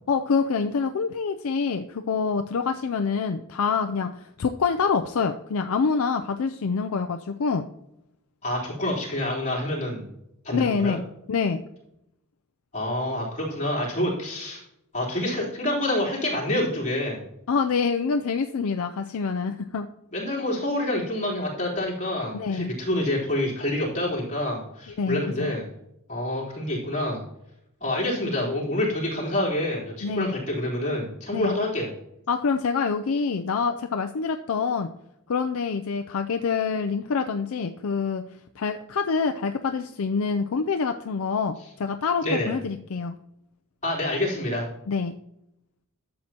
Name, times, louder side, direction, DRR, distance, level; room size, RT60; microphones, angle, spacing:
voice 1, 0.1-7.7 10.5-11.0 11.3-11.6 17.5-19.9 22.3-22.7 25.0-25.5 30.0-30.3 31.3-31.6 32.3-34.9 35.3-38.2 38.6-43.2 44.9-45.1, left 5 dB, 70° left, 7 dB, 0.4 m, -26 dB
voice 2, 8.4-10.1 10.4-11.0 12.7-14.6 14.9-17.2 20.1-25.6 26.1-27.2 27.8-31.9 42.2-42.6 43.8-44.7, left 1 dB, 35° left, -5 dB, 3.5 m, -27 dB
12.0 x 7.5 x 2.9 m, 0.81 s
head